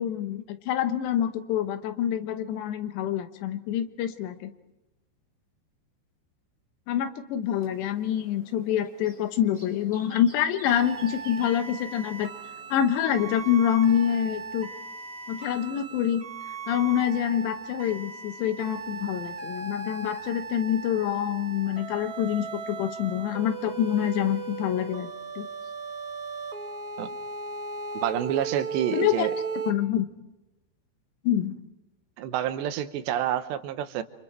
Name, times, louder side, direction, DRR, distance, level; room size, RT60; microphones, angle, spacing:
voice 1, 0.0-4.5 6.9-12.3 12.7-14.7 15.3-16.2 16.7-25.1 25.4-25.5 28.9-29.3 29.7-30.1 31.2-31.6, left 10 dB, 85° left, 9 dB, 3.3 m, -26 dB
sound 1, 7.4-14.3, left 1 dB, 10° left, 4.4 m, -53 dB
sound 2, 10.7-29.7, right 4 dB, 40° right, 1.3 m, -37 dB
voice 2, 27.9-29.3 32.2-34.0, right 11 dB, 85° right, 10 dB, 3.2 m, -28 dB
29.0 x 26.0 x 4.5 m, 1.0 s
omnidirectional pair, 4.9 m